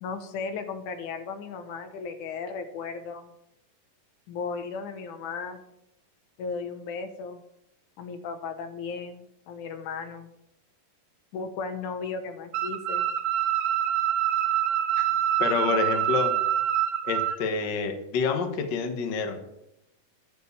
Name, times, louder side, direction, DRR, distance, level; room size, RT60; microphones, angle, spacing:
voice 1, 0.0-3.3 4.3-5.6 6.4-7.4 8.0-10.3 11.3-13.1, left 5 dB, 70° left, 8 dB, 2.1 m, -35 dB
sound 1, 12.5-17.4, right 11 dB, 70° right, 2.5 m, -25 dB
voice 2, 15.4-16.3 17.0-19.4, left 5 dB, 85° left, 5 dB, 0.9 m, -27 dB
12.0 x 4.9 x 8.1 m, 0.82 s
omnidirectional pair, 4.0 m